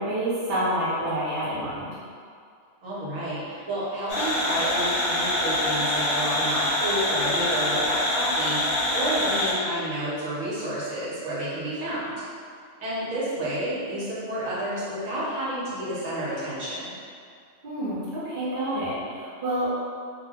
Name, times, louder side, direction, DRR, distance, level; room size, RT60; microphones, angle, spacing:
voice 1, 0.0-1.9 17.6-19.8, right 1 dB, 45° right, -9 dB, 0.8 m, -28 dB
voice 2, 2.8-12.1 12.8-16.9, right 1 dB, 80° right, -9 dB, 1.3 m, -30 dB
sound 1, 4.1-9.5, left 1 dB, 55° left, 0.9 m, -25 dB
2.7 x 2.2 x 3.4 m, 2.2 s
omnidirectional pair, 1.4 m